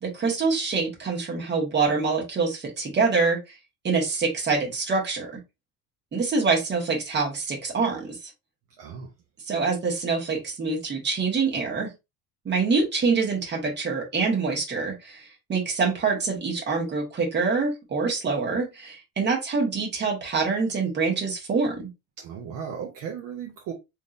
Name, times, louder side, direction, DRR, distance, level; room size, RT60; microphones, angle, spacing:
voice 1, 0.0-3.4 3.8-5.3 6.1-8.3 9.5-11.9 12.4-21.9, right 4 dB, 25° right, 1.3 m, -25 dB
voice 2, 8.8-9.1 22.2-23.7, right 7 dB, 50° right, 0.8 m, -36 dB
3.5 x 2.8 x 2.4 m
cardioid pair, 150°, 43 cm